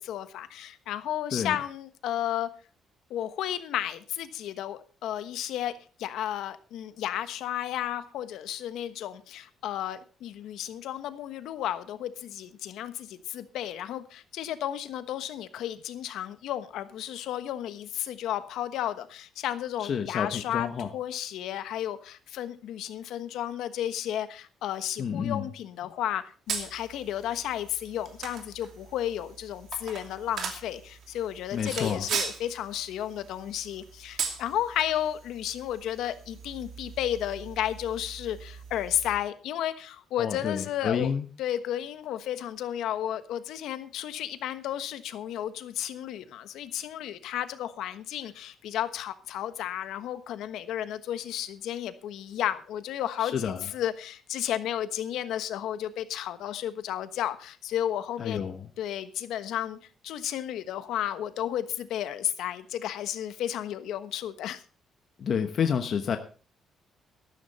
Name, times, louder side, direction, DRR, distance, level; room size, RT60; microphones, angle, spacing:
voice 1, 0.0-2.5 3.1-5.7 6.0-41.1 41.4-58.4 58.8-59.8 60.0-64.6, left 11 dB, 85° left, 12 dB, 1.2 m, -33 dB
voice 2, 19.8-20.9 25.0-25.5 31.5-32.1 40.2-41.3 53.2-53.7 58.2-58.7 65.2-66.2, left 7 dB, 45° left, 7 dB, 1.1 m, -29 dB
sound 1, 26.5-39.2, right 6 dB, 55° right, 2.7 m, -39 dB
13.0 x 12.5 x 4.2 m, 0.37 s
cardioid pair, 165°, 0 cm